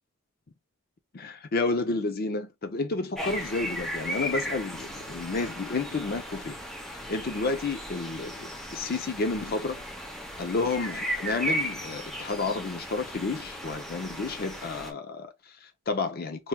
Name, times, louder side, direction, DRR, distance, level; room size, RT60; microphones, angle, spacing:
voice 1, 1.1-6.5 7.1-9.8 10.4-16.5, left 3 dB, 45° left, 0.5 m, -31 dB
sound 1, 3.2-14.9, equal, ahead, 0.7 m, -36 dB
4.5 x 3.0 x 2.2 m
head